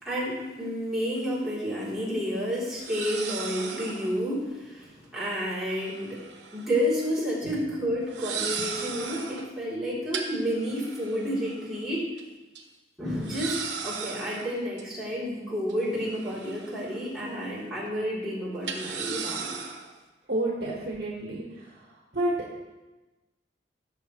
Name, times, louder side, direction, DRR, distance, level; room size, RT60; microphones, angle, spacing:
voice 1, 0.0-6.2 6.5-12.1 13.0-19.6, equal, ahead, -9 dB, 3.4 m, -30 dB
sound 1, 1.2-1.3 2.8-4.2 5.6-6.8 7.0-7.3 8.1-9.5 10.1-11.8 12.2-12.3 12.6-12.7 13.2-14.8 15.7-17.1 17.4-17.6 18.6-19.9, right 6 dB, 75° right, 1.1 m, -36 dB
voice 2, 20.3-21.7 22.1-22.3, right 1 dB, 60° right, -3 dB, 1.5 m, -29 dB
16.5 x 6.9 x 3.2 m, 1.1 s
head